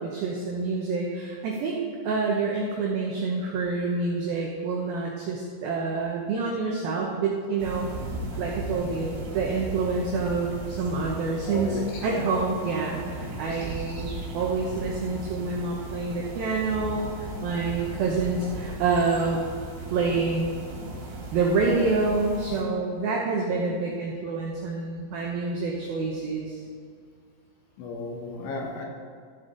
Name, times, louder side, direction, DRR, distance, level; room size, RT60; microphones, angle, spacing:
voice 1, 0.0-1.8 2.0-7.9 8.4-19.4 19.9-20.5 21.3-26.6, right 4 dB, 80° right, -1 dB, 2.1 m, -27 dB
sound 1, 7.6-22.6, right 2 dB, 60° right, 3.8 m, -37 dB
voice 2, 11.5-12.3 27.8-28.9, left 2 dB, 75° left, 0 dB, 3.6 m, -34 dB
14.0 x 7.8 x 3.9 m, 2.1 s
omnidirectional pair, 5.7 m